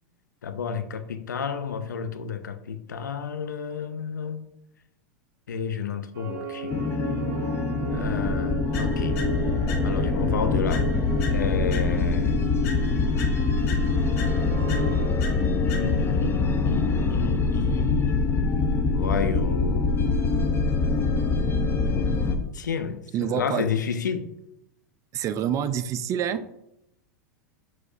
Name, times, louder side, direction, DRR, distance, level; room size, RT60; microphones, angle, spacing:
voice 1, 0.4-4.5 5.5-6.8 7.9-9.2 9.8-10.9 11.3-12.4 15.6-18.2 18.9-20.3 22.5-23.0 23.3-24.3, left 6 dB, 90° left, 0.4 m, -31 dB
sound 1, 6.1-15.1, right 5 dB, 65° right, 0.8 m, -36 dB
sound 2, 6.7-22.4, left 3 dB, 25° left, 0.6 m, -24 dB
sound 3, 8.7-10.2 10.7-12.2 12.6-16.2, left 4 dB, 60° left, 1.1 m, -41 dB
voice 2, 23.1-23.7 25.1-26.6, right 9 dB, 35° right, 0.4 m, -27 dB
6.1 x 3.2 x 2.6 m
hypercardioid pair, 100°, 10 cm